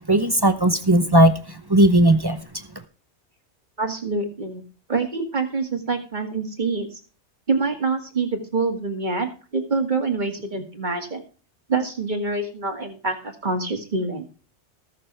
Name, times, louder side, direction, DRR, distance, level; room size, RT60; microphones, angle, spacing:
voice 1, 0.1-2.4, right 1 dB, 20° right, 9 dB, 0.9 m, -17 dB
voice 2, 3.8-4.6 4.9-7.0 7.5-11.2 11.7-14.2, right 3 dB, 40° right, 5 dB, 2.2 m, -26 dB
19.5 x 6.8 x 3.3 m, 0.39 s
omnidirectional pair, 1.2 m